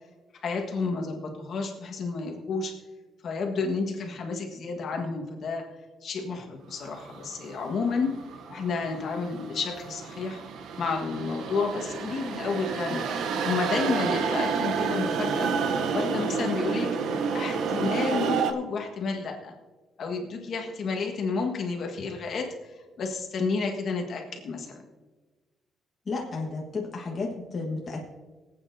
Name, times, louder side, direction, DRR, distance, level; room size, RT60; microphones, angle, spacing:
voice 1, 0.4-2.8 3.2-5.7 6.0-8.1 8.5-10.4 10.8-15.5 15.9-17.0 17.3-19.5 20.0-24.8, left 4 dB, 50° left, 2 dB, 1.5 m, -31 dB
sound 1, 6.9-18.5, right 5 dB, 80° right, 0.8 m, -30 dB
voice 2, 26.1-28.1, left 3 dB, 30° left, -1 dB, 1.3 m, -32 dB
24.5 x 8.6 x 2.7 m, 1.3 s
cardioid pair, 170°, 0 cm